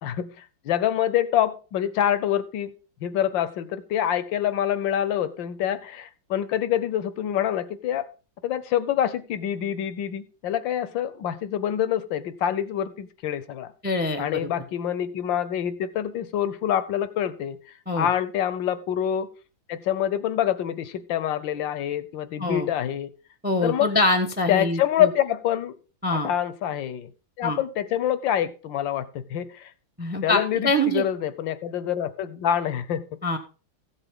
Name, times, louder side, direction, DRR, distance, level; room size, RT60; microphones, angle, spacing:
voice 1, 0.6-2.7 3.0-8.0 8.4-13.7 14.2-17.6 17.9-19.3 19.7-23.1 23.6-23.9 24.5-25.8 26.1-27.1 27.4-29.7 30.2-33.1, left 10 dB, 70° left, 1.4 m, -26 dB
voice 2, 13.8-14.5 17.9-18.1 22.4-22.7 23.4-25.1 26.0-26.3 27.4-27.6 30.0-31.0 33.2-33.4, left 1 dB, 5° right, 0.9 m, -24 dB
14.5 x 8.1 x 3.7 m
omnidirectional pair, 2.2 m